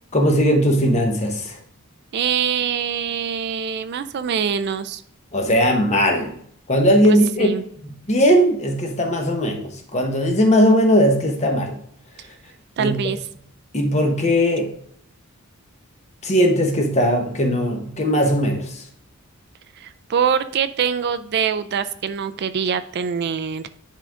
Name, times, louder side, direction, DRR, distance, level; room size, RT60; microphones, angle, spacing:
voice 1, 0.1-1.6 5.3-6.3 6.7-7.5 8.1-11.8 12.8-12.9 13.7-14.7 16.2-18.8, equal, 30° left, 3 dB, 1.2 m, -18 dB
voice 2, 2.1-5.0 7.0-7.6 12.8-13.2 19.8-23.7, right 7 dB, 50° right, 12 dB, 0.4 m, -24 dB
10.0 x 3.8 x 3.7 m, 0.65 s
head